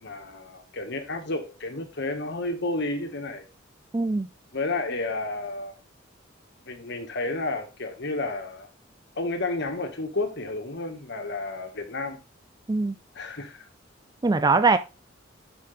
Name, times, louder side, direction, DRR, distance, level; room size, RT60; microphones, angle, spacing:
voice 1, 0.0-3.4 4.5-5.8 6.7-8.7 9.2-12.2 13.1-13.7, left 2 dB, 60° left, 1.7 m, -31 dB
voice 2, 3.9-4.3 12.7-12.9 14.2-14.8, right 3 dB, 20° right, 0.4 m, -21 dB
11.0 x 5.2 x 3.4 m
head